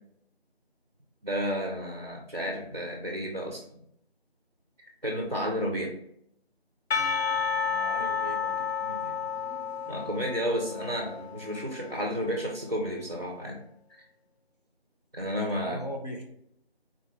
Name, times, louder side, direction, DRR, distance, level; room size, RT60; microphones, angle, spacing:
voice 1, 1.2-3.8 5.0-5.9 9.9-13.6 15.1-15.8, equal, 40° right, 0 dB, 0.5 m, -31 dB
Percussion / Church bell, 6.9-12.1, left 6 dB, 75° left, 0.6 m, -31 dB
voice 2, 7.7-9.3 15.6-16.2, right 1 dB, 40° left, -1 dB, 0.7 m, -40 dB
3.8 x 3.1 x 2.4 m, 0.72 s
figure-of-eight pair, 175°, 32 cm